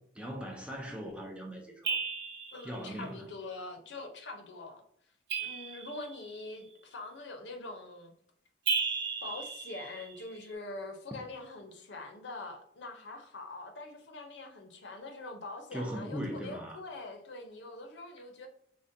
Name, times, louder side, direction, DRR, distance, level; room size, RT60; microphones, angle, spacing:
voice 1, 0.1-2.0 2.6-3.2 15.7-16.8, equal, 5° right, 0.4 m, -39 dB
sound 1, 1.8-2.7 5.3-6.3 8.7-10.3, right 5 dB, 60° right, 0.5 m, -34 dB
voice 2, 2.5-4.8 5.4-8.1 9.2-18.5, left 2 dB, 80° left, 0.6 m, -44 dB
3.6 x 2.1 x 2.6 m
head